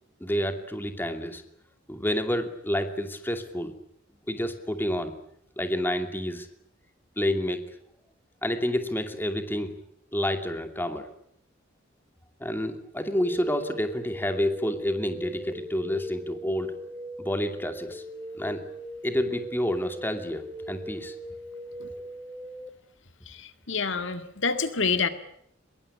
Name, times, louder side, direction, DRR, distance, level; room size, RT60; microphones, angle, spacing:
voice 1, 0.2-1.4 1.9-3.7 4.3-5.1 5.6-6.5 7.2-7.6 8.4-9.8 10.1-11.1 12.4-16.8 17.2-18.0 18.3-18.6 19.0-21.1, left 1 dB, 10° left, 7 dB, 2.6 m, -29 dB
sound 1, 13.1-22.7, right 1 dB, 10° right, 2.6 m, -40 dB
voice 2, 23.3-25.1, left 5 dB, 65° left, 10 dB, 2.0 m, -28 dB
24.0 x 22.5 x 10.0 m, 0.68 s
head